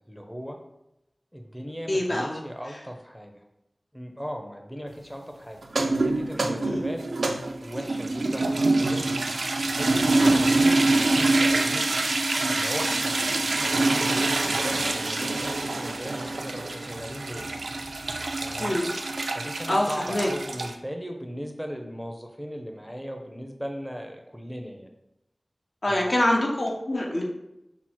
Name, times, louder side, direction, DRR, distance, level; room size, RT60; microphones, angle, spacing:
voice 1, 0.1-0.6 1.3-3.4 3.9-5.6 6.0-7.0 7.6-9.1 9.7-11.9 12.5-17.5 18.4-18.8 19.3-24.9 25.9-26.2, equal, ahead, 3 dB, 0.6 m, -37 dB
voice 2, 1.9-2.4 2.7-2.8 6.6-6.8 10.2-10.4 18.6-18.9 19.7-20.3 25.8-27.2, left 1 dB, 60° left, -1 dB, 0.9 m, -25 dB
sound 1, 5.6-20.7, right 2 dB, 90° right, 0.4 m, -25 dB
5.9 x 2.0 x 4.4 m, 0.88 s
wide cardioid pair, 55°, 0 cm